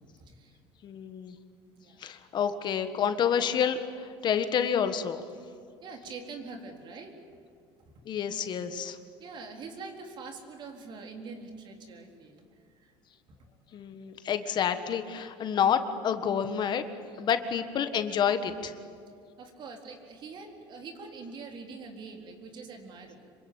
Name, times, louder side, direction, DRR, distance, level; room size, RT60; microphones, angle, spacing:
voice 1, 0.2-0.6 1.8-2.0 5.8-7.2 7.8-7.9 9.2-13.0 13.7-13.8 17.2-17.3 19.4-23.3, right 4 dB, 45° right, 3 dB, 4.1 m, -44 dB
voice 2, 0.8-1.3 2.0-5.2 8.0-9.0 13.7-16.8 17.2-18.7, left 8 dB, 40° left, 9 dB, 1.5 m, -28 dB
26.5 x 23.5 x 8.9 m, 2.3 s
cardioid pair, 130°, 11 cm